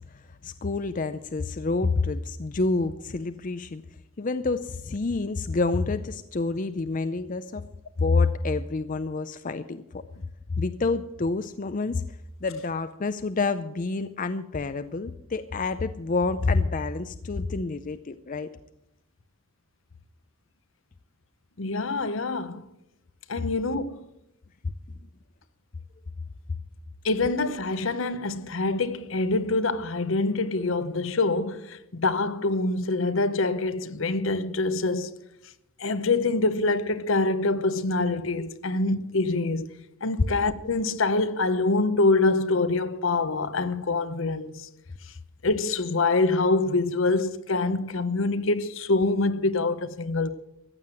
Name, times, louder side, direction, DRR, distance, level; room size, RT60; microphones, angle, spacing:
voice 1, 0.3-3.8 4.2-7.6 8.0-10.0 10.5-12.0 12.4-18.5, left 3 dB, 40° left, 0.5 m, -28 dB
voice 2, 21.6-22.7 23.3-24.1 27.0-35.2 35.8-39.7 40.0-44.7 45.4-50.3, left 3 dB, 65° left, 0.9 m, -25 dB
15.0 x 9.4 x 7.6 m
head